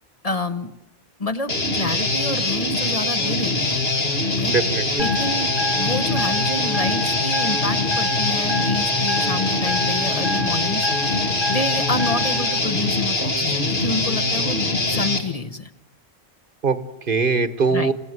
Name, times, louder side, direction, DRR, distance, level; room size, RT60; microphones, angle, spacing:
voice 1, 0.2-0.7 1.2-3.8 4.3-4.5 5.0-15.7 17.7-17.9, left 2 dB, 40° left, 6 dB, 1.1 m, -28 dB
Guitar, 1.5-15.2, left 2 dB, 75° left, 2.8 m, -23 dB
voice 2, 4.5-5.0 16.6-17.9, right 4 dB, 60° right, 12 dB, 1.4 m, -22 dB
sound 1, 5.0-12.6, left 1 dB, 25° right, 1.2 m, -29 dB
29.0 x 16.5 x 9.5 m, 0.92 s
omnidirectional pair, 1.0 m